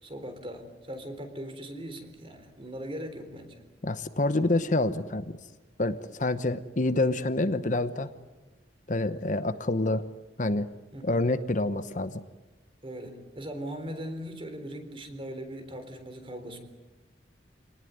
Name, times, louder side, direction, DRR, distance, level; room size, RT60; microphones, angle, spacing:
voice 1, 0.0-3.6 10.9-11.2 12.8-16.6, equal, 30° right, 7 dB, 3.8 m, -39 dB
voice 2, 3.8-5.4 5.8-8.1 8.9-10.0 10.4-10.7 11.0-12.2, left 2 dB, 45° left, 11 dB, 0.9 m, -27 dB
27.5 x 19.0 x 9.6 m, 1.2 s
head